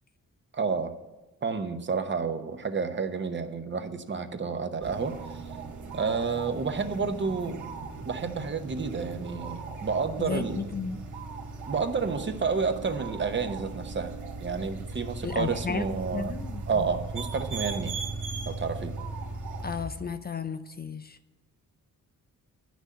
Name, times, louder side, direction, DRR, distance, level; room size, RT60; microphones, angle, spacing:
voice 1, 0.5-0.9 1.4-5.1 5.9-7.6 8.0-10.6 11.6-16.3 16.7-17.9 18.5-18.9, right 5 dB, 35° right, 8 dB, 0.9 m, -30 dB
sound 1, 4.8-19.8, right 3 dB, 70° right, 1.6 m, -38 dB
voice 2, 10.2-11.0 15.2-16.9 19.6-21.2, left 5 dB, 30° left, 10 dB, 0.4 m, -34 dB
9.8 x 6.2 x 8.3 m, 1.1 s
cardioid pair, 100°, 31 cm